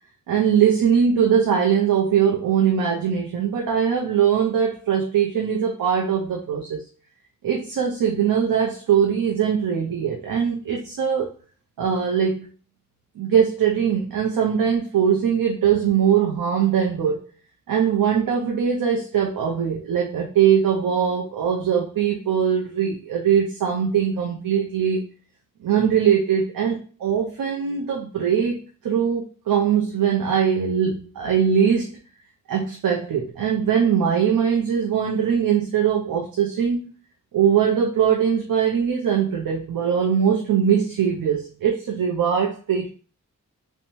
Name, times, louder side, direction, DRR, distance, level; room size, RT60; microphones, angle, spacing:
voice 1, 0.3-6.8 7.4-11.3 11.8-12.5 13.2-17.2 17.7-25.0 25.6-31.9 32.5-36.9 37.3-42.9, right 8 dB, 85° right, -1 dB, 0.5 m, -21 dB
2.7 x 2.1 x 2.9 m, 0.38 s
wide cardioid pair, 100°, 33 cm